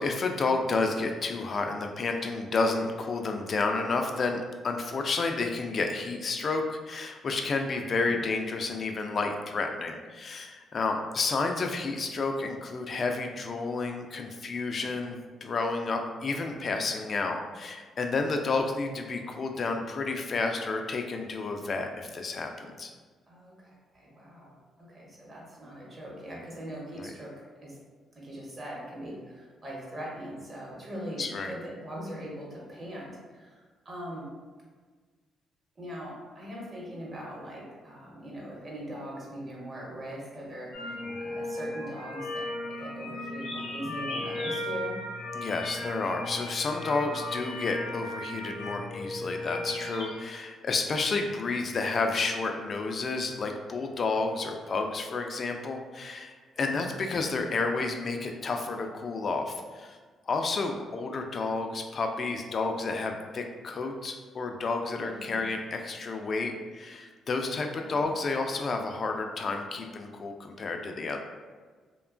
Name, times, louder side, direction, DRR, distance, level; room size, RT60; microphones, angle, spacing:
voice 1, 0.0-22.9 27.0-27.1 31.2-31.5 41.1-41.2 45.3-60.0 60.3-71.2, left 3 dB, 45° left, 4 dB, 0.3 m, -31 dB
voice 2, 23.3-24.5 24.9-27.8 28.1-33.6 33.8-34.3 35.8-42.3 42.8-44.9 56.7-57.0 65.0-65.4 67.9-68.1, equal, 35° right, -4 dB, 0.9 m, -41 dB
sound 1, 40.7-50.1, left 1 dB, 90° left, 0.7 m, -36 dB
2.8 x 2.2 x 2.4 m, 1.4 s
cardioid pair, 90°, 0 cm